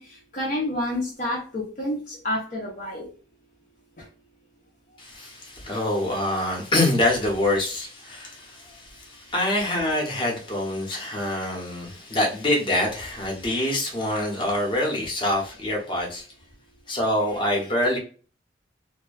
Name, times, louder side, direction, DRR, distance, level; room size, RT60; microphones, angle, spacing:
voice 1, 0.0-3.1 4.0-4.1, left 1 dB, 45° left, 0.6 m, -29 dB
voice 2, 5.0-16.2 16.9-18.0, left 1 dB, 25° left, 0.9 m, -25 dB
2.6 x 2.2 x 2.4 m
head